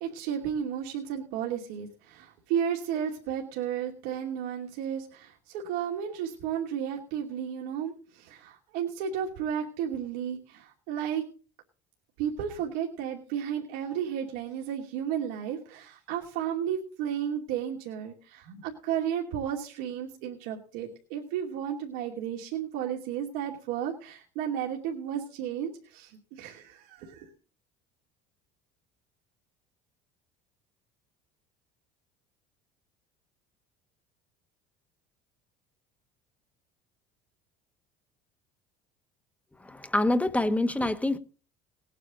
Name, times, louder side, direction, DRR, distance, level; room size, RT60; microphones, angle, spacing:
voice 1, 0.0-11.3 12.2-27.3, right 9 dB, 85° right, 2.7 m, -33 dB
voice 2, 39.6-41.2, left 1 dB, 5° left, 1.2 m, -26 dB
18.5 x 9.6 x 3.8 m
supercardioid pair, 110°, 20 cm